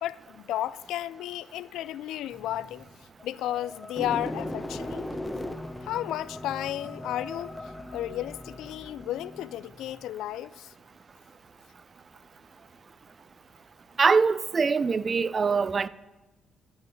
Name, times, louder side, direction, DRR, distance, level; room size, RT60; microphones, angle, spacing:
voice 1, 0.0-2.8 3.2-5.1 5.8-7.5 7.9-10.7, left 13 dB, 80° left, 0.3 m, -33 dB
sound 1, 2.3-10.1, left 1 dB, 10° left, 1.1 m, -39 dB
voice 2, 14.0-15.9, right 5 dB, 40° right, 0.5 m, -23 dB
12.0 x 6.2 x 9.0 m
supercardioid pair, 65°, 0 cm